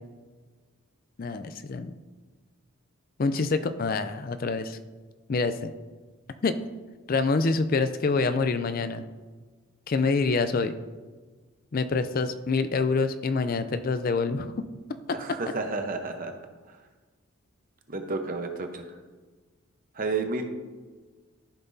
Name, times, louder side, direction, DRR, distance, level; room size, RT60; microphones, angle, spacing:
voice 1, 1.2-1.9 3.2-4.8 5.3-5.7 6.4-6.6 7.1-9.0 9.9-10.7 11.7-14.5 15.1-15.2, left 4 dB, 40° left, 10 dB, 0.4 m, -26 dB
voice 2, 15.1-16.4 17.9-18.9 19.9-20.5, right 3 dB, 40° right, 5 dB, 0.9 m, -31 dB
14.5 x 5.8 x 2.7 m, 1.4 s
head